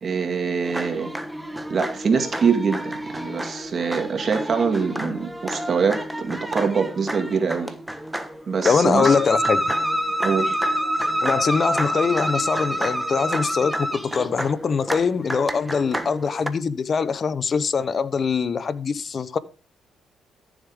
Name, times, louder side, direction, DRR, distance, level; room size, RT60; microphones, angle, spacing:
voice 1, 0.0-1.1 1.7-7.7 8.5-9.2 10.2-10.6, right 5 dB, 45° right, 2.1 m, -24 dB
sound 1, 0.6-16.5, equal, 5° right, 1.3 m, -28 dB
voice 2, 8.6-9.6 11.2-19.4, left 5 dB, 45° left, 0.9 m, -23 dB
14.0 x 7.3 x 3.7 m
cardioid pair, 90°, 0 cm